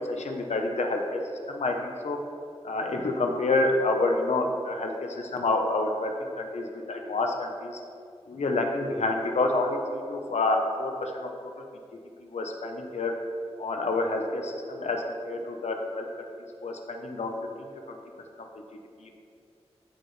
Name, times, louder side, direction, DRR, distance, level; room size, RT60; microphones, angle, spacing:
voice 1, 0.1-1.2 1.5-2.2 2.6-7.8 8.3-11.3 12.2-13.1 13.6-16.1 16.6-17.3 17.6-18.0 19.0-19.1, left 2 dB, 85° left, 3 dB, 0.9 m, -28 dB
15.0 x 5.0 x 3.3 m, 2.4 s
wide cardioid pair, 70°, 11 cm